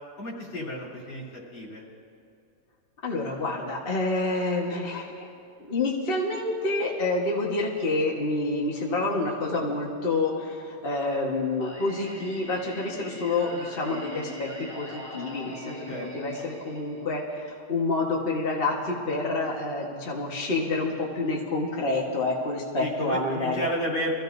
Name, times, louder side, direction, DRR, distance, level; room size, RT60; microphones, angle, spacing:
voice 1, 0.2-1.9 15.9-16.1 22.8-24.1, equal, 60° left, -4 dB, 4.1 m, -32 dB
voice 2, 3.0-5.3 5.6-14.5 14.7-15.8 16.1-23.6, left 2 dB, 30° left, -2 dB, 1.4 m, -28 dB
Singing, 11.6-17.6, left 1 dB, 10° left, 4.1 m, -41 dB
24.0 x 15.5 x 2.7 m, 2.6 s
omnidirectional pair, 2.4 m